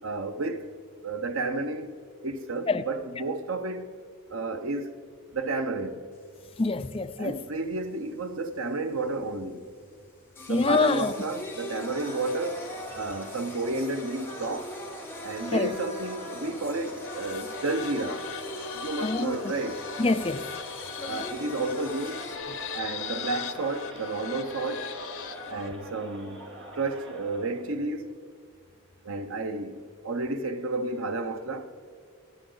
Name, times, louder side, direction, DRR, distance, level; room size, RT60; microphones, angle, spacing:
voice 1, 0.0-0.7 1.0-1.9 2.2-3.9 4.3-5.0 5.3-6.0 7.2-9.7 10.5-12.6 12.9-14.7 15.2-18.2 18.7-19.8 21.0-22.3 22.7-24.9 25.5-26.4 26.7-28.2 29.0-31.7, right 3 dB, 80° right, 0.9 m, -31 dB
Singing, 6.1-22.4, left 2 dB, 10° left, 1.6 m, -42 dB
voice 2, 6.6-7.3 10.5-11.1 15.5-15.7 19.0-19.4 20.0-20.5, left 3 dB, 25° left, 0.4 m, -25 dB
Crowd, 11.4-27.7, right 1 dB, 55° right, 2.7 m, -45 dB
sound 1, 17.0-25.7, left 6 dB, 80° left, 0.9 m, -39 dB
25.0 x 9.8 x 3.9 m
head